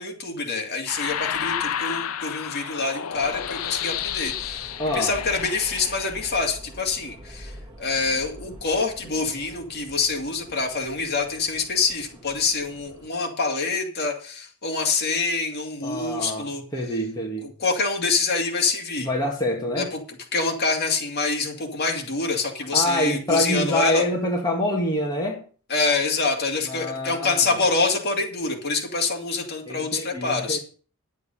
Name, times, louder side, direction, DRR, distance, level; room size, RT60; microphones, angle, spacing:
voice 1, 0.0-7.5 7.8-16.6 17.4-19.1 19.8-20.0 20.3-24.0 25.7-30.6, left 4 dB, 50° left, 1 dB, 2.5 m, -26 dB
sound 1, 0.9-6.5, left 9 dB, 80° left, 0.6 m, -31 dB
sound 2, 3.1-13.1, equal, 20° right, 2.2 m, -45 dB
voice 2, 4.8-5.1 15.8-17.5 19.0-19.9 22.7-25.4 26.7-27.5 29.7-30.6, left 1 dB, 20° left, -1 dB, 1.9 m, -26 dB
10.5 x 8.4 x 5.4 m, 0.40 s
head